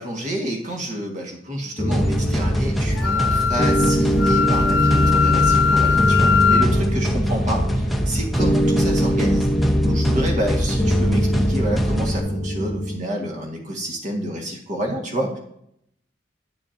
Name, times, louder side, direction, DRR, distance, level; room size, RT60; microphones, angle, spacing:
voice 1, 0.0-9.5 9.8-15.4, right 1 dB, 45° right, 1 dB, 1.8 m, -28 dB
sound 1, 1.8-13.0, equal, 15° left, 1.1 m, -22 dB
sound 2, 1.9-12.2, equal, ahead, 0.7 m, -25 dB
Wind instrument woodwind instrument, 2.9-6.7, left 6 dB, 90° left, 0.9 m, -20 dB
9.9 x 6.9 x 2.8 m, 0.73 s
head